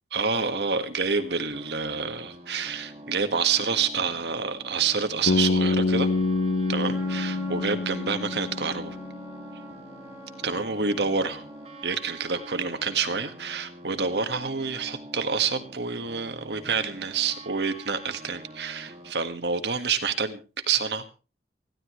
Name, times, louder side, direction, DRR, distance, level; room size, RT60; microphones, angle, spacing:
voice 1, 0.1-6.1 6.7-9.0 10.4-11.4 11.8-20.4 20.7-21.0, right 5 dB, 75° right, 8 dB, 1.6 m, -28 dB
sound 1, 1.5-19.1, right 1 dB, 35° right, 2.2 m, -45 dB
Bass guitar, 5.3-9.3, left 3 dB, 80° left, 0.7 m, -26 dB
Trumpet, 6.9-13.1, right 1 dB, 15° right, 3.7 m, -47 dB
20.0 x 15.0 x 3.2 m, 0.35 s
head